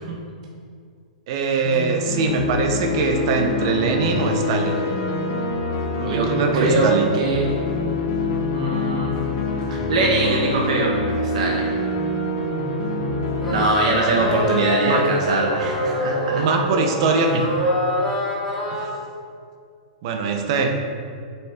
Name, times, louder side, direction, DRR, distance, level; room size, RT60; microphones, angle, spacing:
voice 1, 1.3-4.8 5.9-7.1 13.9-14.3 14.8-15.0 16.3-17.5 18.7-18.9 20.0-20.7, right 4 dB, 40° right, 3 dB, 0.9 m, -22 dB
sound 1, 1.6-13.6, left 2 dB, 35° left, 1.1 m, -25 dB
voice 2, 6.5-6.9 7.1-7.4 8.5-9.1 9.9-10.9 11.2-11.7 13.5-16.4, right 2 dB, 60° right, -2 dB, 1.2 m, -22 dB
sound 2, 13.4-18.9, left 1 dB, 5° left, 1.8 m, -25 dB
7.5 x 6.0 x 3.7 m, 2.1 s
hypercardioid pair, 165°, 4 cm